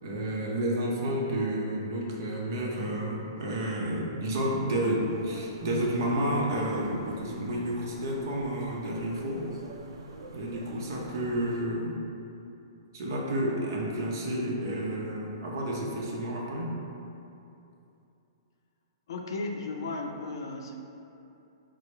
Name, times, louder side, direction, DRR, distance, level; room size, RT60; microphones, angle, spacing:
voice 1, 0.0-9.4 10.3-12.0 12.9-16.7, right 1 dB, 50° right, -3 dB, 0.7 m, -30 dB
sound 1, 5.0-11.6, right 1 dB, 90° right, 0.5 m, -47 dB
voice 2, 19.1-20.8, left 3 dB, 65° left, 2 dB, 0.4 m, -35 dB
4.7 x 2.0 x 4.4 m, 2.8 s
hypercardioid pair, 170°, 2 cm